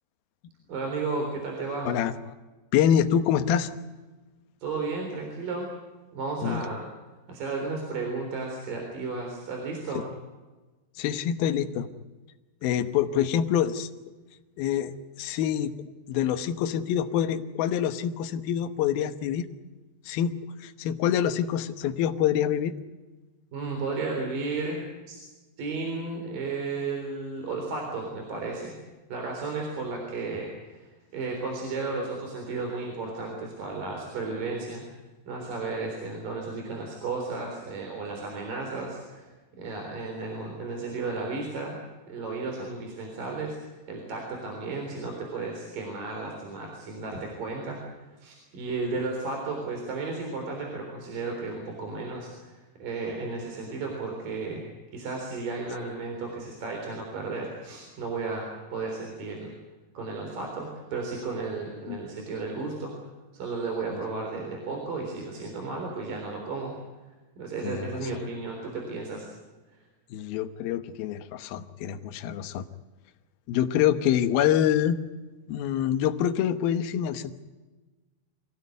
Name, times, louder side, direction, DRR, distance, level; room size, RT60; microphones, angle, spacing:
voice 1, 0.7-1.9 4.6-5.7 6.1-6.9 7.3-10.1 23.5-25.2 25.6-28.8 29.1-30.9 31.1-34.8 35.3-39.3 39.6-41.8 42.1-43.6 43.9-47.8 48.2-54.6 54.9-59.6 60.0-62.9 63.3-66.7 67.4-69.3, right 3 dB, 55° right, 1 dB, 5.3 m, -33 dB
voice 2, 2.7-3.7 6.4-6.6 11.0-11.9 12.6-13.9 14.6-15.7 16.1-19.5 20.1-20.3 20.6-22.7 61.9-62.0 63.9-64.0 67.6-68.0 70.1-72.7 73.5-75.0 75.5-77.4, left 9 dB, 70° left, 8 dB, 2.8 m, -26 dB
25.5 x 17.0 x 9.4 m, 1.2 s
omnidirectional pair, 4.7 m